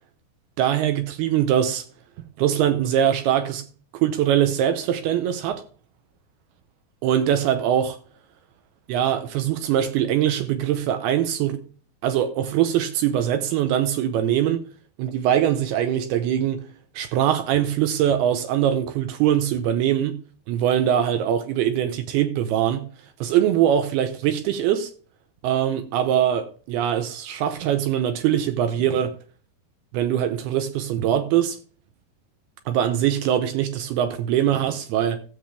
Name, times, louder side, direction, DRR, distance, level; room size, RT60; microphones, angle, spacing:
voice 1, 0.6-1.9 2.4-3.6 3.9-5.6 7.0-8.0 8.9-11.6 12.0-14.7 15.0-16.7 17.0-20.2 20.5-22.9 23.2-24.9 25.4-29.1 29.9-31.6 32.7-35.2, right 10 dB, 75° right, 2.6 m, -22 dB
16.0 x 7.1 x 3.3 m
omnidirectional pair, 4.8 m